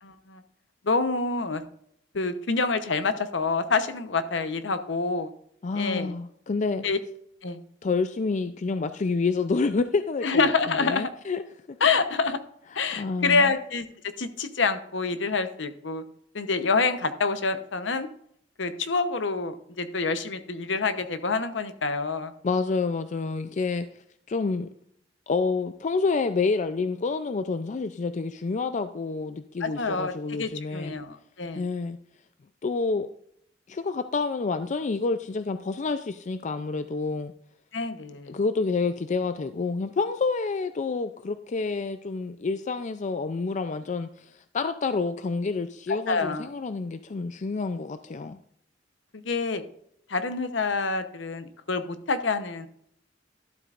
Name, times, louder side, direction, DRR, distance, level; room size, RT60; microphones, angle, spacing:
voice 1, 0.0-0.4 0.8-1.6 2.1-5.3 5.7-6.1 6.8-7.0 7.4-7.6 10.2-11.1 11.8-12.4 12.7-13.8 14.2-16.0 16.3-18.1 18.6-22.3 29.6-31.6 37.7-38.4 45.9-46.5 49.1-49.6 50.1-52.7, left 4 dB, 70° left, 0.9 m, -27 dB
voice 2, 5.6-6.8 7.8-10.5 10.8-11.4 13.0-13.5 22.4-23.9 24.3-24.7 25.3-30.9 31.5-32.0 32.6-33.1 33.7-37.3 38.3-48.4, left 4 dB, 40° left, 0.4 m, -28 dB
12.5 x 7.7 x 2.5 m
head